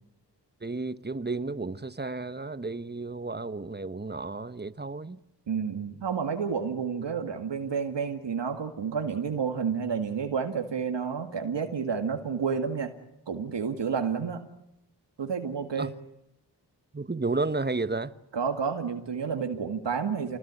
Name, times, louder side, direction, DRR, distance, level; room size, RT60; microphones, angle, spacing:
voice 1, 0.6-5.2 15.8-15.9 16.9-18.2, right 3 dB, 25° right, 1.2 m, -32 dB
voice 2, 5.5-12.9 13.3-14.4 15.2-15.9 18.3-20.4, right 6 dB, 90° right, 2.1 m, -30 dB
28.0 x 20.0 x 9.7 m
cardioid pair, 55°, 42 cm